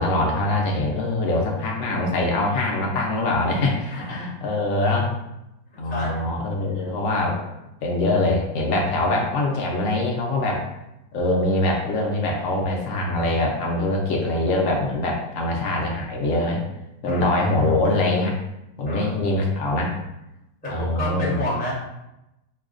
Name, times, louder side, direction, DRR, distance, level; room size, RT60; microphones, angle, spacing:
voice 1, 0.0-5.1 5.8-7.4 7.8-10.6 11.1-16.6 17.0-18.4 18.8-19.9 20.7-21.4, left 2 dB, 70° left, -1 dB, 0.7 m, -23 dB
voice 2, 5.9-6.3 6.7-6.9 17.0-17.5 18.8-19.2 20.6-21.7, left 1 dB, 10° left, -7 dB, 0.5 m, -30 dB
5.4 x 2.2 x 2.4 m, 0.90 s
omnidirectional pair, 2.0 m